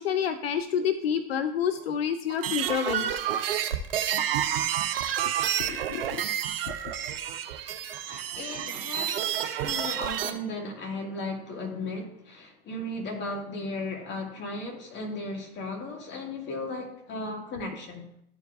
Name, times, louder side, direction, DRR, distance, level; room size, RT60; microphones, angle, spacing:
voice 1, 0.0-3.1 5.7-6.2, left 8 dB, 90° left, 11 dB, 0.5 m, -28 dB
sound 1, 2.3-10.3, right 10 dB, 75° right, 0.8 m, -29 dB
voice 2, 8.1-18.1, left 2 dB, 40° left, 0 dB, 2.2 m, -36 dB
13.0 x 4.7 x 2.5 m, 0.71 s
hypercardioid pair, 85°, 29 cm